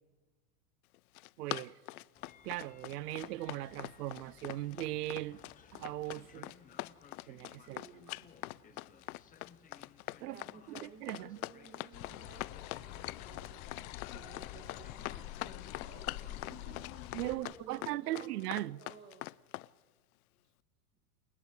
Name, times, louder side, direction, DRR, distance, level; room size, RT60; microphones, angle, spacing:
Run, 0.9-19.7, left 19 dB, 65° left, 0.6 m, -43 dB
voice 1, 1.4-1.8 2.4-5.4 5.7-6.5 7.3-7.8 10.2-10.4 10.7-11.4 17.1-18.8, right 16 dB, 75° right, 0.7 m, -39 dB
Train, 2.1-17.6, left 7 dB, 15° left, 1.7 m, -61 dB
voice 2, 7.7-8.3 10.3-13.6 14.1-19.3, right 5 dB, 20° right, 2.4 m, -56 dB
sound 1, 11.9-17.4, left 13 dB, 40° left, 1.3 m, -46 dB
28.5 x 19.0 x 5.0 m
supercardioid pair, 150°, 47 cm